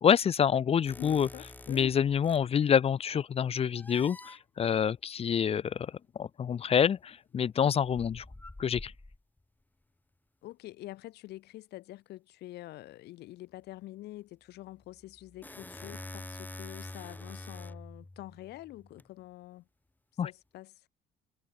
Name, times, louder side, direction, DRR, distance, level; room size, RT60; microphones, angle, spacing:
voice 1, 0.0-1.3 1.7-8.2 8.6-8.9 20.2-20.3, left 8 dB, 35° left, 0.7 m, -27 dB
sound 1, 0.8-2.5 3.7-4.4 6.4-6.6 7.8-9.4 14.9-19.1, left 2 dB, 10° left, 6.2 m, -46 dB
voice 2, 1.0-2.0 10.4-19.7 20.2-20.9, left 16 dB, 75° left, 2.0 m, -46 dB
cardioid pair, 110°, 17 cm